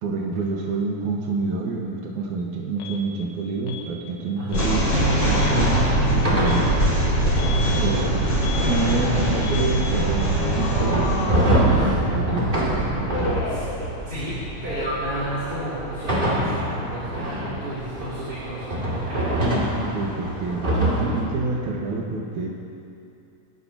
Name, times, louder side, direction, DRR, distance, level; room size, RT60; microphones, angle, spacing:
voice 1, 0.0-4.9 5.2-6.7 7.7-8.1 8.6-12.6 13.0-13.4 19.9-22.5, right 3 dB, 75° right, -2 dB, 2.8 m, -28 dB
Alarm, 2.8-3.0 3.7-3.9 4.5-4.7 5.2-5.6 6.4-6.7 7.4-8.0 8.4-9.0 9.4-9.9 10.5-12.1 13.1-14.3 14.6-15.2 15.4-17.1, left 4 dB, 65° left, 2.3 m, -35 dB
voice 2, 4.4-4.7 7.6-7.9 11.7-11.9 13.5-13.6 14.1-14.3 14.6-19.4, right 1 dB, 45° right, -10 dB, 3.7 m, -32 dB
sound 1, 4.5-15.8, right 1 dB, 40° left, 5.2 m, -23 dB
sound 2, 5.0-21.2, right 1 dB, 15° right, 2.2 m, -26 dB
26.5 x 13.0 x 2.8 m, 2.5 s
omnidirectional pair, 3.5 m